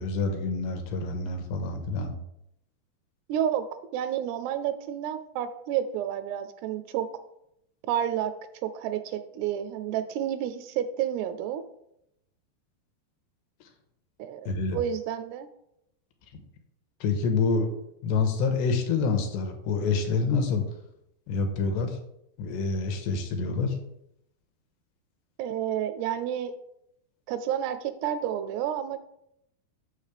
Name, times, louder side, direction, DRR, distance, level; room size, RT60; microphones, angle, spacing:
voice 1, 0.0-2.1 14.5-14.8 17.0-17.7 18.0-20.7 21.3-22.0 22.4-23.8, left 4 dB, 80° left, 5 dB, 3.1 m, -27 dB
voice 2, 3.3-3.7 3.9-7.1 7.9-8.3 8.6-11.6 14.2-15.5 25.4-26.5 27.3-29.0, right 10 dB, 80° right, 10 dB, 2.5 m, -30 dB
6.8 x 6.4 x 5.0 m, 0.78 s
omnidirectional pair, 4.9 m